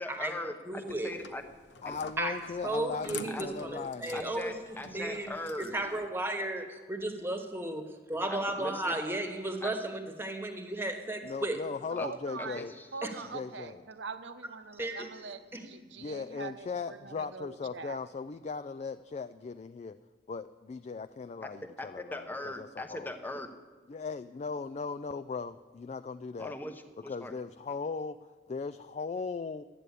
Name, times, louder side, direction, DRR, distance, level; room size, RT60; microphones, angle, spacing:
voice 1, 0.0-1.4 1.8-2.0 3.3-3.5 4.1-5.7 8.3-9.0 9.6-9.7 12.0-12.1 12.4-12.9 21.4-21.5 21.8-23.5 26.4-26.7 27.0-27.3, left 1 dB, 10° left, 6 dB, 0.9 m, -40 dB
voice 2, 0.7-1.1 2.2-4.5 4.9-5.3 5.6-11.6 13.0-13.1 14.8-15.1 15.5-15.6, right 1 dB, 15° right, 5 dB, 1.3 m, -34 dB
sound 1, 0.9-6.1, left 5 dB, 70° left, 0.8 m, -48 dB
voice 3, 1.8-4.3 11.2-12.7 13.3-13.8 16.0-20.0 20.3-23.1 23.9-26.6 27.1-29.6, left 4 dB, 40° left, 10 dB, 0.3 m, -38 dB
voice 4, 11.9-12.6 12.9-18.0, right 4 dB, 85° right, 9 dB, 0.9 m, -43 dB
12.5 x 9.2 x 8.3 m, 1.3 s
head